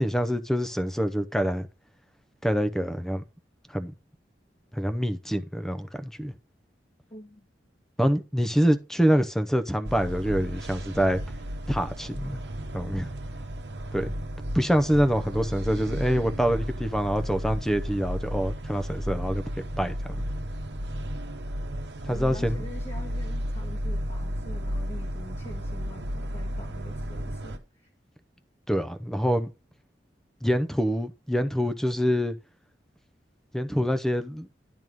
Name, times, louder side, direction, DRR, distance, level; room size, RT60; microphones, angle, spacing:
voice 1, 0.0-1.7 2.4-3.2 3.7-3.9 4.7-6.3 8.0-11.2 11.7-12.4 12.7-13.1 13.9-14.1 14.5-19.9 22.1-22.6 28.7-29.5 30.4-32.3 33.5-34.5, equal, 5° left, 0.7 m, -25 dB
voice 2, 7.1-7.5 22.1-27.9, left 1 dB, 35° left, 1.3 m, -45 dB
sound 1, 9.8-27.6, equal, 70° right, 1.1 m, -33 dB
11.0 x 3.6 x 6.2 m
head